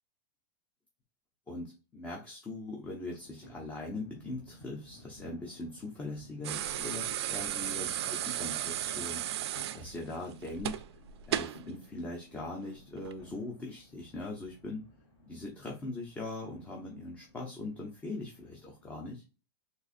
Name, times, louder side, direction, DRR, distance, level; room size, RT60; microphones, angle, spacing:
voice 1, 1.5-9.2 9.7-10.8 11.3-14.8 15.2-19.2, left 2 dB, 10° left, 0 dB, 0.5 m, -41 dB
sound 1, 3.0-18.9, equal, 35° left, 1.6 m, -56 dB
sound 2, 6.4-11.6 13.0-13.1, right 12 dB, 85° right, 0.4 m, -35 dB
3.9 x 2.5 x 2.4 m, 0.33 s
supercardioid pair, 160°, 13 cm